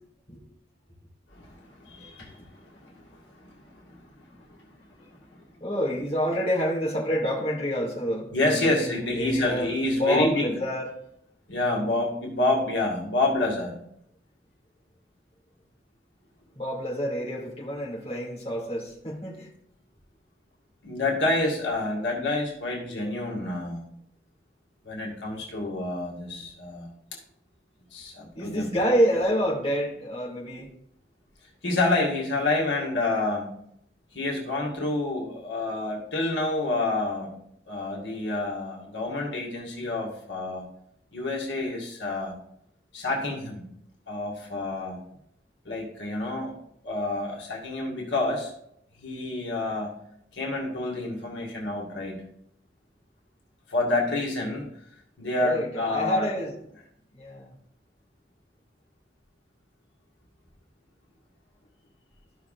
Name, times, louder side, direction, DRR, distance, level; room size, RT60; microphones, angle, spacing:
voice 1, 1.3-4.6 8.3-10.5 11.5-13.7 20.8-23.8 24.8-26.9 27.9-28.7 31.6-33.5 34.1-37.3 37.7-40.6 41.1-42.3 42.9-43.7 44.1-45.0 45.7-46.5 46.8-48.5 49.0-49.9 50.3-52.2 53.7-54.7 55.2-56.3, left 2 dB, 80° left, -1 dB, 2.0 m, -28 dB
voice 2, 5.6-10.9 16.5-19.5 28.3-30.7 55.4-56.5 57.1-57.5, equal, 30° left, -5 dB, 2.4 m, -28 dB
14.0 x 5.9 x 2.5 m, 0.72 s
head